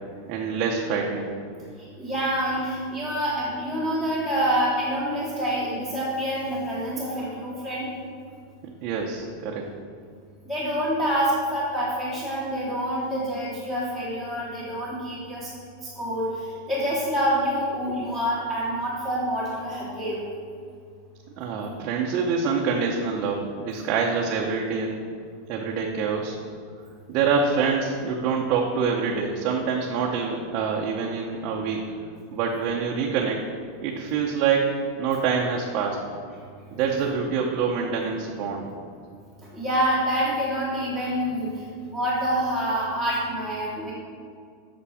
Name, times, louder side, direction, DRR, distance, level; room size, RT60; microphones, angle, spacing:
voice 1, 0.3-1.3 8.8-9.6 21.4-24.9 25.5-26.4 27.1-31.8 32.3-33.4 33.8-36.0 36.7-38.7, right 5 dB, 35° right, -1 dB, 0.7 m, -26 dB
voice 2, 1.8-7.9 10.4-15.5 15.8-20.2 39.5-43.9, equal, 10° left, -8 dB, 1.2 m, -27 dB
8.5 x 6.0 x 4.8 m, 2.3 s
supercardioid pair, 175°, 0 cm